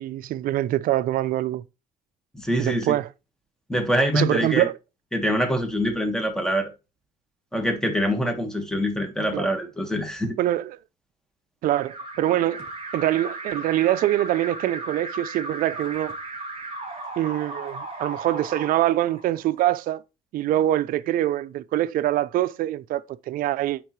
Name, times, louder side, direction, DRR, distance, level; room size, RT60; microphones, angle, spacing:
voice 1, 0.0-1.6 2.6-3.1 4.1-4.8 9.3-9.5 10.4-10.8 11.6-12.7 12.9-16.2 17.2-20.0 20.3-23.8, right 13 dB, 60° right, 0.4 m, -24 dB
voice 2, 2.3-3.0 3.7-4.7 5.1-6.7 7.5-10.3, equal, 5° left, 1.4 m, -24 dB
Alarm, 11.7-19.6, right 2 dB, 35° right, 2.9 m, -36 dB
9.4 x 3.6 x 3.1 m
cardioid pair, 110°, 17 cm